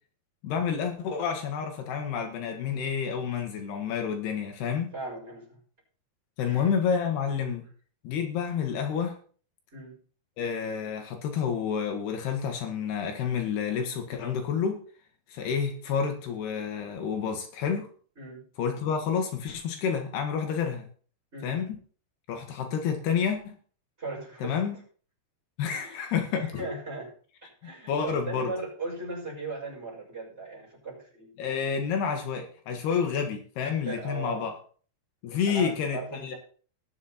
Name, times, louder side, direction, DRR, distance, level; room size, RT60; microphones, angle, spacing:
voice 1, 0.4-4.9 6.4-7.6 8.0-9.1 10.4-14.8 15.3-17.9 18.6-20.9 21.4-21.8 22.3-23.6 24.4-24.8 25.6-26.7 27.6-28.5 31.4-34.5 35.2-36.4, left 7 dB, 75° left, 4 dB, 3.5 m, -29 dB
voice 2, 4.9-5.6 6.4-6.7 9.7-10.0 18.2-18.5 21.3-21.6 24.0-24.6 25.7-27.1 27.4-31.3 33.8-34.5 35.5-36.4, right 3 dB, 15° right, -5 dB, 6.4 m, -38 dB
19.5 x 7.3 x 4.2 m, 0.43 s
omnidirectional pair, 4.7 m